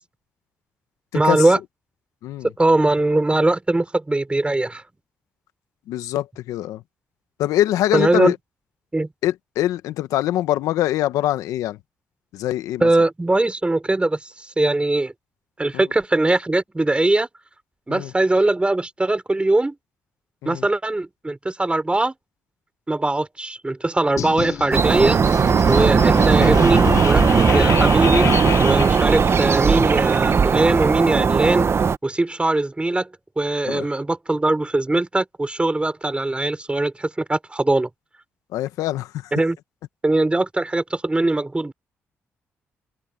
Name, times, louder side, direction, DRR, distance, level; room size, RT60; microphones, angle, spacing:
voice 1, 1.1-1.6 2.4-4.8 7.9-8.3 8.9-9.1 12.8-15.1 15.6-17.3 17.9-19.8 20.5-22.1 22.9-25.2 25.7-28.3 28.6-31.7 32.0-33.1 33.4-37.9 39.3-39.6 40.0-41.7, right 2 dB, 20° right, 3.8 m, -21 dB
voice 2, 5.9-6.8 7.4-8.3 9.2-11.8 12.3-12.9 15.7-15.8 17.9-18.1 20.4-20.6 28.7-28.9 33.7-33.9 38.5-39.3, left 13 dB, 85° left, 1.3 m, -23 dB
sound 1, 24.2-29.8, left 9 dB, 65° left, 0.7 m, -28 dB
sound 2, 24.7-32.0, right 6 dB, 50° right, 1.3 m, -17 dB
supercardioid pair, 55°, 6 cm